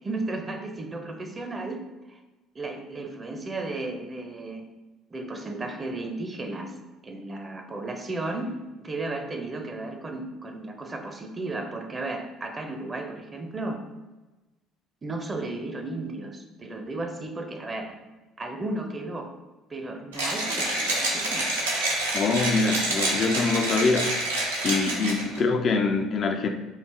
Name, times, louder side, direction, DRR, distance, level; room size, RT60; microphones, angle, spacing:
voice 1, 0.0-1.8 2.1-2.2 2.5-4.6 5.1-6.7 7.0-8.5 8.8-13.8 15.0-18.0 18.4-19.3 19.7-21.5, right 2 dB, 30° right, 4 dB, 0.5 m, -34 dB
Mechanisms, 20.1-25.4, right 1 dB, 80° right, 0.6 m, -27 dB
voice 2, 22.1-24.1 24.6-26.5, left 4 dB, 45° left, 5 dB, 0.3 m, -24 dB
3.2 x 2.4 x 3.4 m, 1.1 s
figure-of-eight pair, 55°, 0 cm